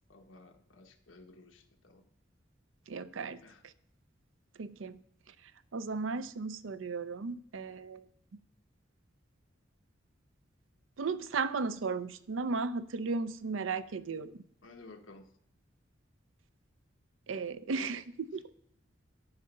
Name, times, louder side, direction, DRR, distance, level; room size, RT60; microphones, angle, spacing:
voice 1, 0.1-2.0 3.4-3.6 14.6-15.3 18.3-18.4, left 3 dB, 80° left, 5 dB, 1.1 m, -55 dB
voice 2, 2.9-3.4 4.6-5.0 5.7-8.0 11.0-14.3 17.3-18.4, right 4 dB, 90° right, 14 dB, 0.5 m, -35 dB
11.0 x 6.7 x 5.3 m, 0.68 s
head